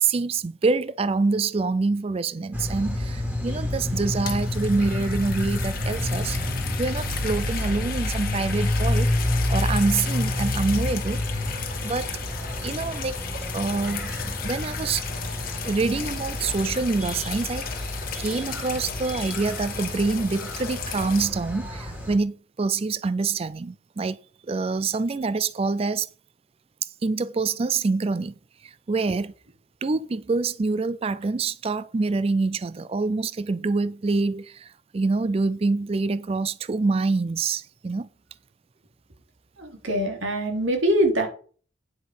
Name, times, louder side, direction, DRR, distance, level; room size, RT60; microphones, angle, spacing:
voice 1, 0.0-6.4 6.8-9.1 9.5-11.2 11.8-12.2 12.6-13.2 13.5-15.1 15.6-24.2 24.5-26.1 27.0-28.3 28.6-29.3 29.8-38.1, right 3 dB, 30° right, 0.4 m, -26 dB
sound 1, 2.5-22.2, left 1 dB, 10° right, 2.6 m, -29 dB
sound 2, 4.0-21.3, left 8 dB, 50° left, 1.5 m, -36 dB
voice 2, 39.6-41.3, equal, 80° right, 3.1 m, -23 dB
9.5 x 6.0 x 5.5 m
head